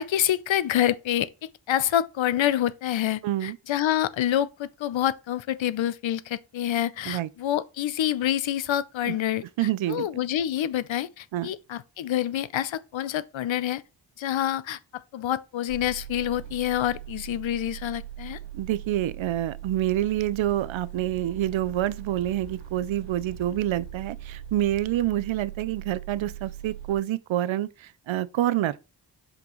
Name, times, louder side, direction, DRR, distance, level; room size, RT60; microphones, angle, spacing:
voice 1, 0.0-13.8 14.2-18.4, left 11 dB, 80° left, 0.6 m, -27 dB
voice 2, 3.2-3.6 7.1-7.3 9.1-9.2 9.6-10.1 11.3-11.5 18.5-28.8, right 13 dB, 80° right, 0.5 m, -27 dB
sound 1, 15.7-26.9, right 10 dB, 65° right, 1.8 m, -41 dB
6.0 x 5.2 x 3.0 m
wide cardioid pair, 110°, 46 cm